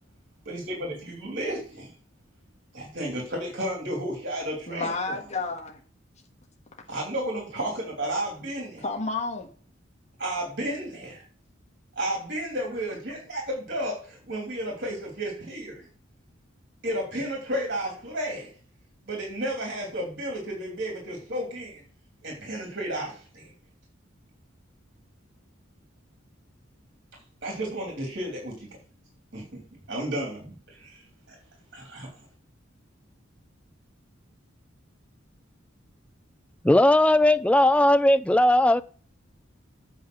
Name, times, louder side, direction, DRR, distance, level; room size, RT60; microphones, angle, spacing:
voice 1, 0.4-1.9 2.7-5.1 6.9-8.8 10.2-11.2 12.0-15.9 16.8-18.5 19.1-21.8 22.2-23.5 27.4-28.7 29.3-29.6 29.9-31.0 31.3-31.4 31.7-32.1, right 1 dB, 55° right, 2.9 m, -32 dB
voice 2, 4.7-5.8 8.8-9.5 12.7-12.8, left 3 dB, 35° left, 1.5 m, -31 dB
voice 3, 36.6-38.8, left 1 dB, 5° left, 0.3 m, -18 dB
8.2 x 5.6 x 6.1 m
head